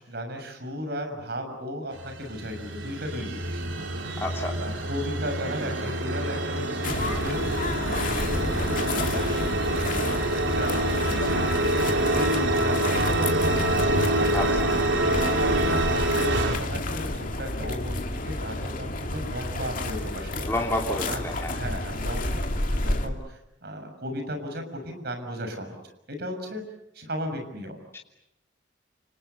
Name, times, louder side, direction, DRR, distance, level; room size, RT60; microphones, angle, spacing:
voice 1, 0.0-3.6 4.6-7.5 7.7-9.5 9.9-13.7 14.1-20.5 20.9-22.4 22.7-25.8 26.1-26.6 26.9-27.8, equal, 55° right, 6 dB, 6.5 m, -35 dB
sound 1, 1.9-16.6, right 1 dB, 80° right, 3.3 m, -26 dB
voice 2, 4.2-4.5 14.3-14.4 20.5-21.5 27.9-28.0, left 1 dB, 15° left, -1 dB, 3.0 m, -29 dB
sound 2, 6.8-23.1, left 2 dB, 45° left, 2.7 m, -30 dB
30.0 x 27.5 x 6.9 m, 0.87 s
head